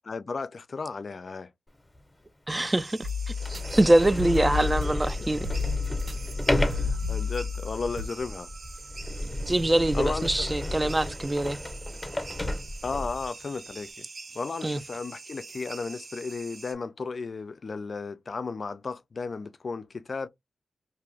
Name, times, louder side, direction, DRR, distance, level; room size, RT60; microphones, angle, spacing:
voice 1, 0.0-1.5 5.2-5.3 6.6-8.5 9.9-10.5 12.8-14.1 14.3-20.3, left 4 dB, 55° left, 0.3 m, -34 dB
Sliding door, 1.9-2.0 2.8-2.9 3.3-13.3, left 1 dB, 25° left, 0.8 m, -32 dB
voice 2, 2.5-3.1 3.5-5.5 9.5-11.6 14.6-14.8, right 1 dB, 20° right, 0.4 m, -24 dB
sound 1, 2.5-16.7, right 4 dB, 60° right, 0.8 m, -45 dB
sound 2, 3.0-8.1, left 6 dB, 75° right, 1.6 m, -33 dB
2.6 x 2.4 x 3.2 m
cardioid pair, 70°, 0 cm